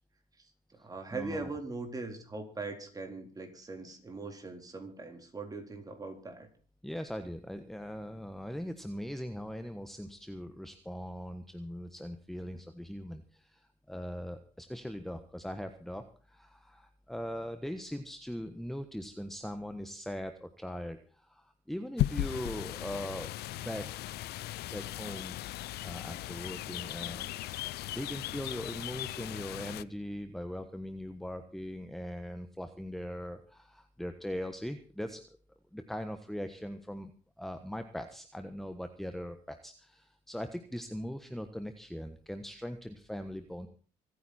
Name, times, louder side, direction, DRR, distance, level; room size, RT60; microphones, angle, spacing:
voice 1, 0.4-6.5, right 3 dB, 20° right, 4 dB, 4.0 m, -41 dB
voice 2, 1.1-1.5 6.8-23.9 24.7-25.4 25.8-27.3 27.9-35.2 35.7-37.1 37.4-43.7, equal, ahead, 8 dB, 1.3 m, -40 dB
sound 1, 22.0-29.8, left 15 dB, 75° left, 0.6 m, -37 dB
26.0 x 9.5 x 4.4 m, 0.40 s
cardioid pair, 110°, 17 cm